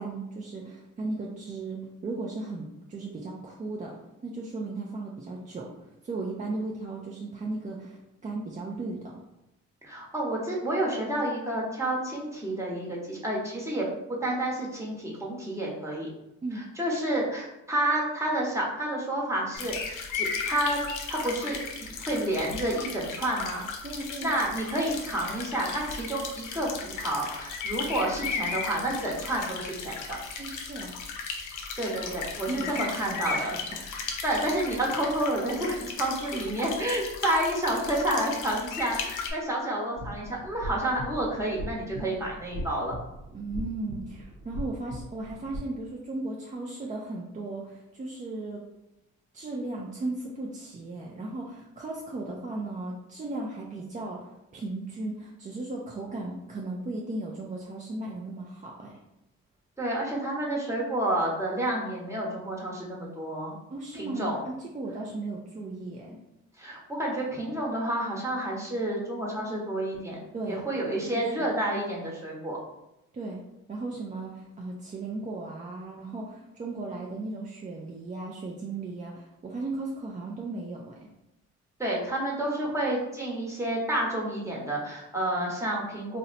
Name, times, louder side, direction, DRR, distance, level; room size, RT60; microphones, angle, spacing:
voice 1, 0.0-3.9 4.2-5.7 6.0-9.1 16.4-16.7 23.8-24.4 30.4-30.9 32.5-33.5 43.3-48.6 49.3-59.0 63.7-66.2 70.3-70.7 71.1-71.5 73.1-73.4 73.7-81.1, right 2 dB, 25° right, -2 dB, 0.4 m, -36 dB
voice 2, 9.8-16.1 16.5-20.8 21.1-23.7 24.2-30.2 31.8-33.9 34.2-42.9 59.8-63.6 63.9-64.4 66.6-70.2 70.5-72.6 81.8-86.2, right 1 dB, 10° right, -4 dB, 1.0 m, -30 dB
sound 1, 19.5-39.3, left 5 dB, 85° left, 0.6 m, -36 dB
sound 2, 39.9-45.6, equal, 75° right, 0.8 m, -39 dB
2.6 x 2.1 x 4.0 m, 0.90 s
cardioid pair, 90°, 30 cm